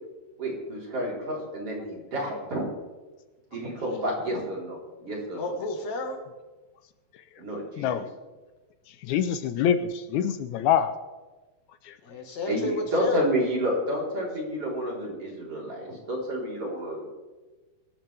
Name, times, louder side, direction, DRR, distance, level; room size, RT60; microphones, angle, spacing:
voice 1, 0.4-2.7 3.5-5.5 7.4-7.9 12.5-17.1, equal, 45° right, -3 dB, 5.2 m, -30 dB
voice 2, 5.4-6.2 12.0-13.3, left 2 dB, 65° left, 3 dB, 3.1 m, -32 dB
voice 3, 9.0-10.9 11.8-12.0, left 8 dB, 80° left, 10 dB, 2.0 m, -25 dB
24.5 x 11.5 x 3.5 m, 1.2 s
omnidirectional pair, 3.5 m